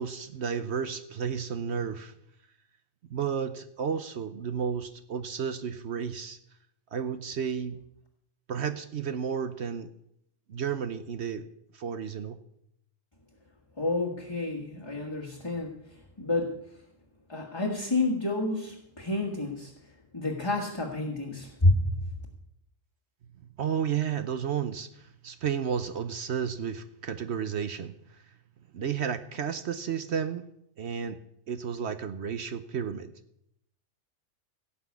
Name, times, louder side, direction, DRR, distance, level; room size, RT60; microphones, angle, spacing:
voice 1, 0.0-2.1 3.1-6.4 6.9-7.8 8.5-9.9 10.5-11.5 11.7-12.4 23.6-28.2 28.7-30.4 30.8-31.2 31.5-33.1, right 7 dB, 65° right, 10 dB, 1.0 m, -32 dB
voice 2, 13.8-15.7 16.2-16.5 17.3-19.7 20.1-21.9, left 2 dB, 20° left, -1 dB, 1.5 m, -29 dB
17.0 x 6.0 x 8.3 m, 0.75 s
omnidirectional pair, 1.3 m